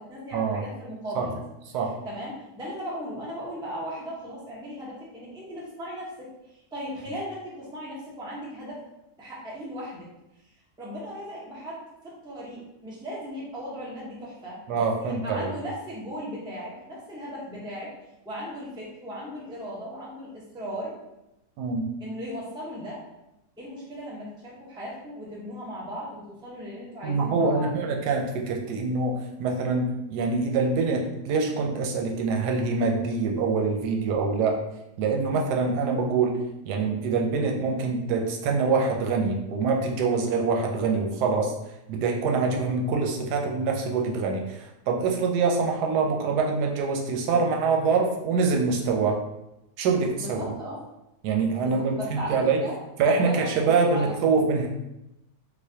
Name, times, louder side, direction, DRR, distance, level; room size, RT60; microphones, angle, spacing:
voice 1, 0.0-1.4 2.0-8.8 9.2-10.1 10.8-17.9 18.2-21.0 22.0-23.0 23.6-27.7 50.2-50.8 51.6-52.8 53.0-54.1, equal, 5° right, -6 dB, 0.4 m, -37 dB
voice 2, 14.7-15.5 21.6-21.9 27.0-34.6 35.0-36.4 36.7-41.5 41.9-49.2 49.8-50.4 51.2-52.6 53.0-54.7, right 4 dB, 90° right, 1 dB, 1.2 m, -25 dB
4.1 x 2.5 x 2.7 m, 0.90 s
omnidirectional pair, 1.7 m